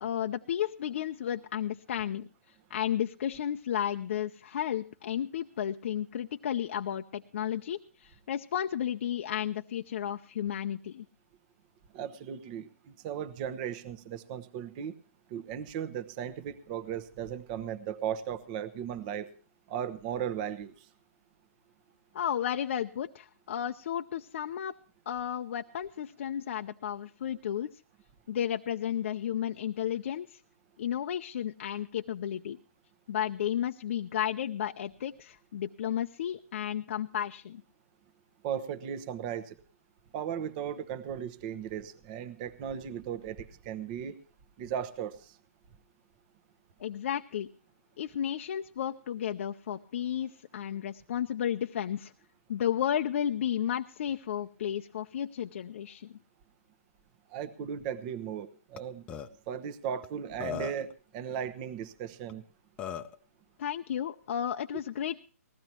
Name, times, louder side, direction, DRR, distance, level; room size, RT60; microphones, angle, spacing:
voice 1, 0.0-2.3 2.7-11.1 22.1-24.8 25.1-27.7 28.3-30.4 30.8-32.6 33.1-37.6 46.8-47.5 48.0-52.1 52.5-56.2 63.6-65.2, left 10 dB, 50° left, 5 dB, 0.6 m, -33 dB
voice 2, 11.9-14.9 15.3-19.3 19.7-20.9 38.4-39.6 40.1-44.2 44.6-45.4 57.3-59.0 59.5-62.4, right 9 dB, 30° right, 12 dB, 1.0 m, -36 dB
Burping eructation, 58.8-58.9 59.1-59.3 60.0-60.1 60.4-60.9 62.3-62.4 62.8-63.2, left 8 dB, 15° left, 0.7 m, -37 dB
20.0 x 15.0 x 3.0 m, 0.37 s
hypercardioid pair, 150°, 9 cm